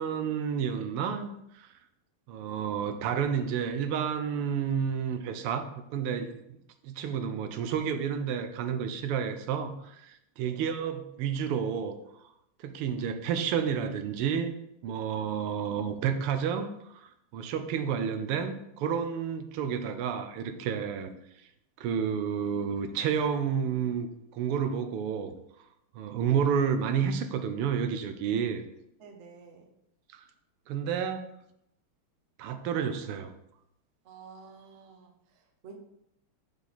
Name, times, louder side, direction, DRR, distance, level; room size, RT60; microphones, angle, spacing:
voice 1, 0.0-1.7 2.3-6.6 6.8-12.0 12.6-14.6 14.8-16.7 17.0-21.1 21.8-24.1 24.3-25.3 25.9-28.6 30.1-30.2 30.7-31.3 32.4-33.3, right 7 dB, 85° right, 8 dB, 1.5 m, -30 dB
voice 2, 29.0-29.7 34.0-35.8, right 5 dB, 65° right, 3 dB, 0.7 m, -51 dB
5.0 x 4.8 x 4.2 m, 0.79 s
omnidirectional pair, 2.4 m